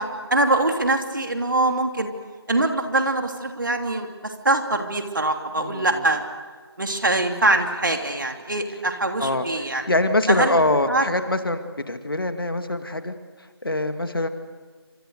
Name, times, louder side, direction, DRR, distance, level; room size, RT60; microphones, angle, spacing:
voice 1, 0.0-2.1 2.5-6.3 6.8-9.8 10.3-10.6 10.9-11.0, right 2 dB, 50° right, 4 dB, 3.1 m, -23 dB
voice 2, 5.6-6.0 9.2-9.5 9.9-13.1 13.6-14.3, left 2 dB, 55° left, 8 dB, 2.3 m, -23 dB
28.5 x 27.0 x 6.7 m, 1.5 s
figure-of-eight pair, 165°, 14 cm